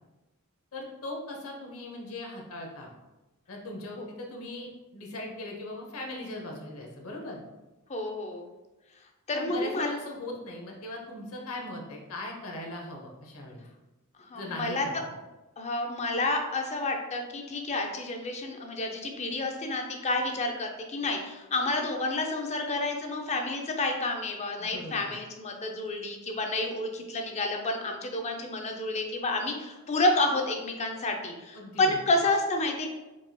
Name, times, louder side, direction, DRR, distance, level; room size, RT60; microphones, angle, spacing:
voice 1, 0.7-2.9 3.5-7.4 9.3-13.7 14.3-15.0 24.6-25.1 31.5-32.0, left 2 dB, 65° left, 0 dB, 0.8 m, -39 dB
voice 2, 7.9-8.4 9.3-9.9 14.2-15.0 15.6-32.9, left 2 dB, 30° left, 3 dB, 0.4 m, -30 dB
4.6 x 2.8 x 2.2 m, 1.1 s
head